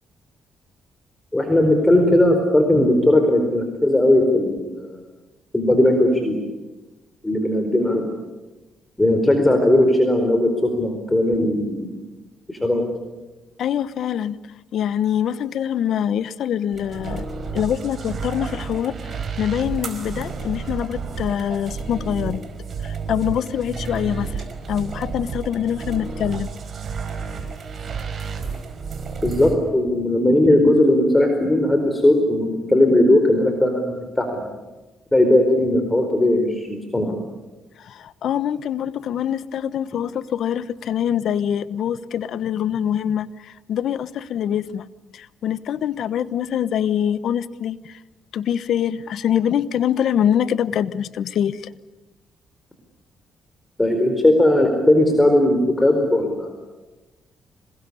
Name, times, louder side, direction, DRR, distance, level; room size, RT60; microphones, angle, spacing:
voice 1, 1.3-5.0 5.5-6.4 7.2-8.1 9.0-11.9 12.5-12.8 29.2-34.4 35.1-37.1 53.8-56.5, left 1 dB, 15° left, 4 dB, 4.5 m, -18 dB
voice 2, 13.6-14.4 14.7-17.2 17.5-22.4 22.8-26.5 37.8-44.8 45.1-48.0 48.3-51.7, left 9 dB, 70° left, 16 dB, 1.1 m, -24 dB
sound 1, 16.7-29.6, right 5 dB, 50° right, 4.7 m, -31 dB
26.5 x 20.5 x 9.9 m, 1.1 s
cardioid pair, 90°, 0 cm